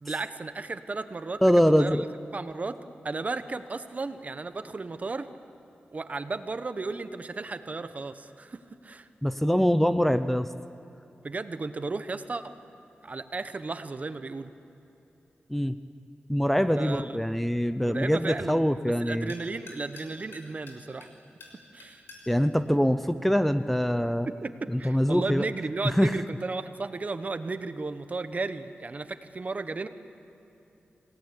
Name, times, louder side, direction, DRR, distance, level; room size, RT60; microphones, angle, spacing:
voice 1, 0.0-1.4 1.8-2.0 2.3-2.8 3.0-5.3 5.9-9.1 11.2-12.5 13.0-14.5 16.7-17.2 17.8-21.1 21.7-22.0 24.4-29.9, right 3 dB, 40° right, 10 dB, 1.2 m, -34 dB
voice 2, 1.4-2.0 9.2-10.5 15.5-15.8 16.3-19.3 22.3-24.3 24.7-25.4 25.8-26.1, equal, 5° left, 11 dB, 0.7 m, -24 dB
sound 1, 19.3-23.8, left 2 dB, 85° left, 5.9 m, -53 dB
26.5 x 18.0 x 9.9 m, 3.0 s
wide cardioid pair, 95°, 4 cm